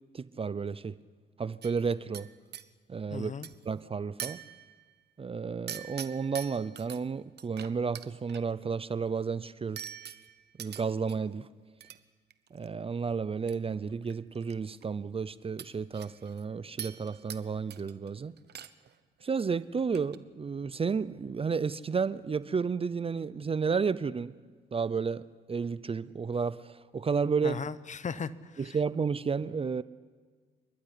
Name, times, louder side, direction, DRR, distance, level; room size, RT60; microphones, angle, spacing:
voice 1, 0.1-1.0 1.4-2.3 2.9-3.3 3.7-4.4 5.2-9.8 10.6-11.5 12.5-18.3 19.2-24.3 24.7-25.2 25.5-27.6 28.6-29.8, right 5 dB, 30° right, 0.6 m, -32 dB
sound 1, 1.6-2.7 3.4-3.7 4.2-4.9 5.7-7.0 7.4-8.4 9.8-11.2 11.8-12.0 12.3-12.7 13.5-13.6 13.9-14.5 14.8-14.9 15.6-16.4 16.8-17.4 17.7-18.1 18.4-18.9 19.2-19.4 19.8-20.2, right 9 dB, 55° right, 1.0 m, -43 dB
voice 2, 3.1-3.5 27.4-28.8, left 6 dB, 40° left, 0.9 m, -37 dB
27.5 x 12.0 x 10.0 m
cardioid pair, 90°, 20 cm